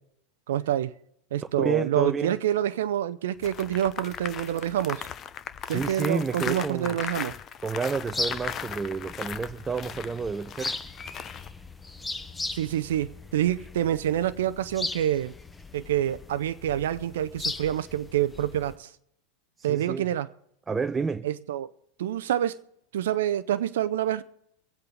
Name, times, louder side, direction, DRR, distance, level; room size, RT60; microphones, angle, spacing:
voice 1, 0.5-0.9 1.3-5.1 5.7-7.4 12.5-15.3 15.7-18.9 19.6-20.3 21.2-21.7 22.0-22.6 22.9-24.2, right 11 dB, 70° right, 0.5 m, -27 dB
voice 2, 1.6-2.4 5.6-7.0 7.6-10.8 19.6-20.1 20.7-21.3, right 5 dB, 20° right, 0.5 m, -30 dB
sound 1, 3.4-11.5, left 8 dB, 35° left, 0.9 m, -37 dB
sound 2, 7.9-18.8, left 2 dB, 15° left, 1.2 m, -38 dB
24.5 x 8.2 x 3.9 m
hypercardioid pair, 90°, 0 cm